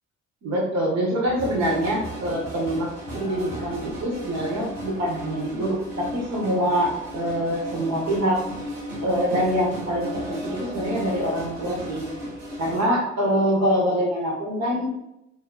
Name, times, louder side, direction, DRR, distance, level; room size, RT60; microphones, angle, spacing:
voice 1, 0.4-8.4 9.0-12.1 12.6-15.1, equal, 45° right, -1 dB, 0.9 m, -25 dB
sound 1, 1.3-12.8, equal, 90° right, 0.6 m, -35 dB
3.3 x 2.2 x 2.2 m, 0.85 s
figure-of-eight pair, 40°, 36 cm